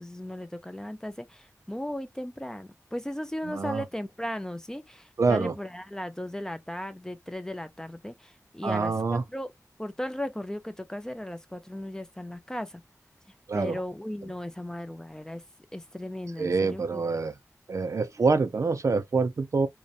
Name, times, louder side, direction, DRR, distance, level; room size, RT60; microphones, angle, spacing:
voice 1, 0.0-9.5 9.8-12.8 13.5-15.4 15.7-17.0, left 1 dB, 10° left, 0.3 m, -36 dB
voice 2, 3.5-3.8 5.2-5.5 8.6-9.2 13.5-13.8 16.4-17.3 17.7-19.7, right 4 dB, 60° right, 0.4 m, -26 dB
2.7 x 2.1 x 2.3 m
wide cardioid pair, 85°, 6 cm